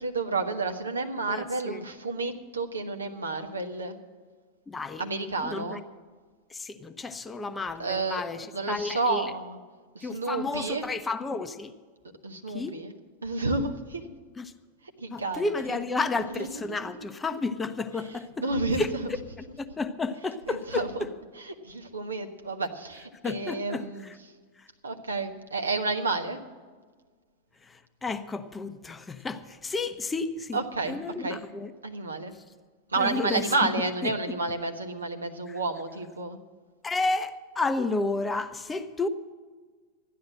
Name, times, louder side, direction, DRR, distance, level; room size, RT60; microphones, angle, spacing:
voice 1, 0.0-3.9 5.0-5.8 7.8-8.2 8.5-9.6 9.9-10.9 12.2-12.9 13.2-14.0 15.0-15.8 16.4-16.8 18.4-19.1 20.5-21.0 21.4-24.1 24.8-26.4 30.5-31.4 31.8-32.3 32.9-36.4, right 3 dB, 75° right, 1.2 m, -30 dB
voice 2, 1.3-1.8 4.7-5.0 5.4-5.8 6.5-9.3 10.0-11.7 12.5-12.8 14.4-14.5 15.1-18.4 18.8-18.9 19.6-21.1 23.2-24.1 24.6-24.7 27.6-30.6 30.9-31.7 33.0-33.5 34.0-34.1 35.5-35.6 36.8-39.1, left 3 dB, 15° left, 0.7 m, -32 dB
13.0 x 10.5 x 7.6 m
figure-of-eight pair, 90°, 0 cm